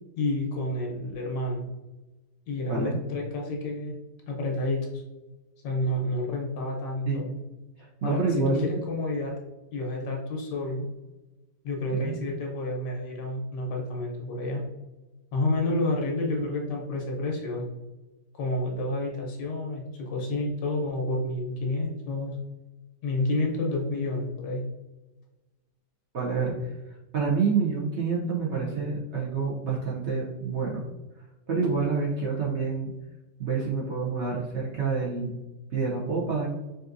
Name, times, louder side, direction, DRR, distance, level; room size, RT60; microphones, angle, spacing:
voice 1, 0.2-1.7 2.5-4.0 4.3-5.0 5.6-7.3 8.0-9.4 9.7-10.9 11.6-14.7 15.3-17.7 18.3-22.4 23.0-24.6, left 2 dB, 80° left, -1 dB, 1.5 m, -29 dB
voice 2, 7.8-8.7 11.9-12.2 26.1-26.7 27.1-30.8 31.5-32.9 33.4-35.3 35.7-36.5, right 5 dB, 60° right, -5 dB, 0.8 m, -28 dB
5.2 x 2.7 x 2.5 m, 1.1 s
omnidirectional pair, 1.9 m